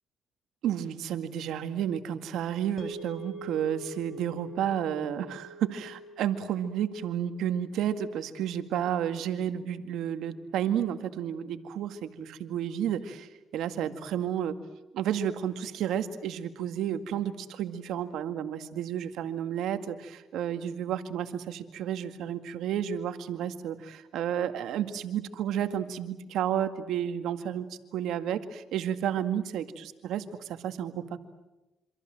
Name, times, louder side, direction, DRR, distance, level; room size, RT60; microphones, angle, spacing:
voice 1, 0.6-14.6 14.9-27.7 27.9-29.7 30.0-31.2, right 10 dB, 85° right, 9 dB, 2.0 m, -31 dB
sound 1, 2.8-11.1, right 1 dB, 40° left, 4.8 m, -47 dB
27.5 x 26.0 x 7.7 m, 1.0 s
cardioid pair, 90°, 0 cm